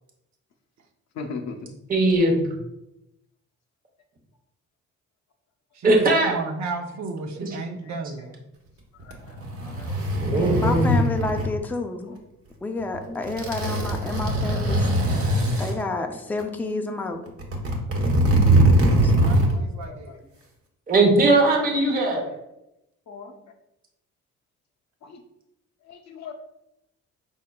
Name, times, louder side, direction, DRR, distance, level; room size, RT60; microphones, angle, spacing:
voice 1, 1.1-1.6 7.9-8.0 8.9-9.4 10.2-11.4 12.7-13.0 13.3-13.9 14.2-14.3 15.7-16.1 16.4-16.5 17.0-17.2 19.5-20.2 21.8-21.9 23.1-23.3 25.0-25.2 25.8-26.3, left 5 dB, 65° left, 2 dB, 0.6 m, -41 dB
voice 2, 1.9-2.5 5.8-6.4 7.4-7.6 10.2-11.0 13.0-13.2 13.6-13.7 14.7-15.0 16.6-16.8 20.9-22.3, right 2 dB, 30° right, 0 dB, 0.9 m, -20 dB
voice 3, 5.7-8.3 18.9-20.2, right 3 dB, 65° right, 4 dB, 0.8 m, -34 dB
sound 1, 9.0-11.5 12.8-13.0 13.2-15.8 16.4-16.5 17.3-19.6 19.8-19.9, right 1 dB, 50° right, 1.1 m, -21 dB
voice 4, 9.6-10.0 10.3-12.1 12.6-14.9 15.6-17.2 19.0-19.1, left 3 dB, 5° left, 4 dB, 0.4 m, -30 dB
5.4 x 3.6 x 2.3 m, 0.88 s
cardioid pair, 90°, 30 cm